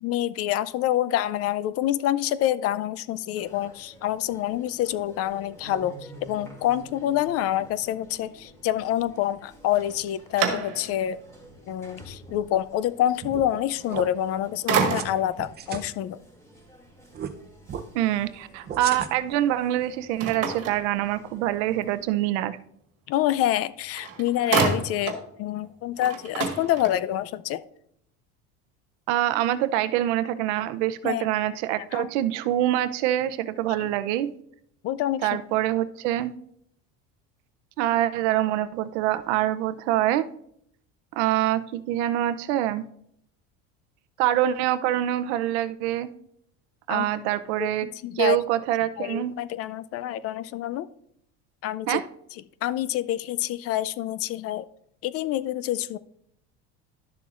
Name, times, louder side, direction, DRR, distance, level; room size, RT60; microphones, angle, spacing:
voice 1, 0.0-11.2 11.7-16.2 23.1-27.6 31.0-31.3 31.8-32.1 33.8-33.9 34.8-35.4 46.9-47.1 47.6-48.4 49.0-50.9 51.6-52.0 52.6-54.7 55.0-56.0, left 12 dB, 45° left, 16 dB, 0.4 m, -27 dB
sound 1, 3.3-22.1, right 1 dB, 10° left, 2.4 m, -50 dB
sound 2, 9.7-11.1 11.7-11.8 14.0-14.3 14.7-15.4 20.2-21.5 23.6-23.7 24.0-25.3 25.6-25.7 26.0-27.2, right 6 dB, 45° right, 1.6 m, -28 dB
sound 3, 13.2-13.6 13.9-14.0 14.7-15.1 15.4-15.8 17.1-17.3 17.7-17.8 18.7-19.3, right 8 dB, 30° right, 0.6 m, -34 dB
voice 2, 17.9-22.6 29.1-34.3 35.2-36.3 37.8-40.3 41.1-42.8 44.2-46.1 46.9-47.9 48.2-49.3 51.9-52.0, right 13 dB, 85° right, 13 dB, 0.6 m, -25 dB
12.0 x 6.9 x 2.5 m, 0.70 s
cardioid pair, 130°, 34 cm